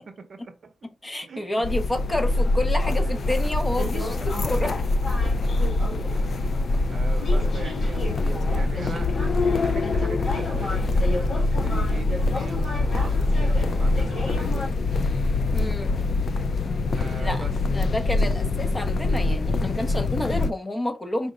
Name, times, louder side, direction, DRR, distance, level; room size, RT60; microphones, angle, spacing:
voice 1, 0.0-0.9 1.2-1.7 3.0-3.2 4.0-4.6 5.2-5.3 6.1-9.1 9.5-14.8 17.0-17.6 17.8-17.9 19.5-19.9, right 4 dB, 45° right, 0.7 m, -41 dB
voice 2, 1.0-4.7 15.5-15.9 17.2-21.3, left 1 dB, 15° left, 0.7 m, -29 dB
sound 1, 1.6-20.5, left 2 dB, 45° left, 0.3 m, -24 dB
sound 2, 2.8-14.7, left 1 dB, 65° left, 1.5 m, -33 dB
4.9 x 2.1 x 3.8 m
wide cardioid pair, 165°, 0 cm